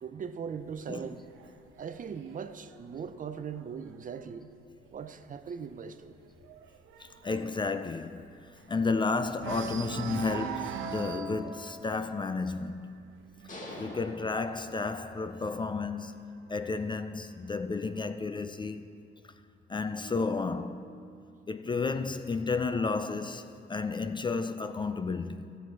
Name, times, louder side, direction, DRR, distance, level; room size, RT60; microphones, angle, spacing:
voice 1, 0.0-1.3 1.8-4.5 4.9-6.1, right 6 dB, 45° right, 0.6 m, -39 dB
sound 1, 0.6-4.2 4.6-5.0 5.2-5.3 5.7-9.0 9.4-15.9 16.8-17.8, right 7 dB, 85° right, 0.6 m, -43 dB
voice 2, 7.0-13.0 13.8-16.2 16.5-18.8 19.7-20.9 21.5-25.6, left 4 dB, 25° left, 0.4 m, -32 dB
sound 2, 13.5-15.3, left 2 dB, 40° left, 1.7 m, -45 dB
sound 3, 20.0-22.2, right 6 dB, 25° right, 2.0 m, -53 dB
13.0 x 7.8 x 4.5 m
cardioid pair, 90°, 20 cm